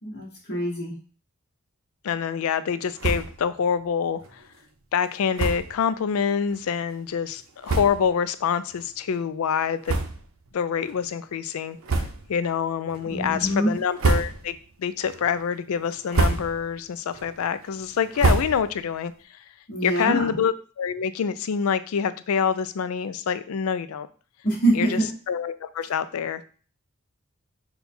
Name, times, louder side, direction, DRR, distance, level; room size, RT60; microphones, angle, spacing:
voice 1, 0.0-0.9 13.1-13.7 19.7-20.3 24.4-25.1, right 1 dB, 50° left, -3 dB, 1.1 m, -24 dB
voice 2, 2.0-4.2 4.9-9.9 10.5-11.8 12.3-19.1 19.8-24.1 24.7-25.0 25.3-26.5, left 7 dB, 85° left, 13 dB, 0.4 m, -26 dB
sound 1, 3.0-3.5 3.8-3.9 4.2-4.3 5.3-5.8 6.5-6.6 7.3-7.4 7.6-8.2 8.7-8.9 9.8-10.5 10.8-11.0 11.8-12.4 12.9-13.3 13.8-14.7 15.1-15.5 15.9-16.7 17.1-18.9, right 3 dB, 80° right, 0.7 m, -27 dB
5.4 x 2.3 x 4.3 m, 0.40 s
head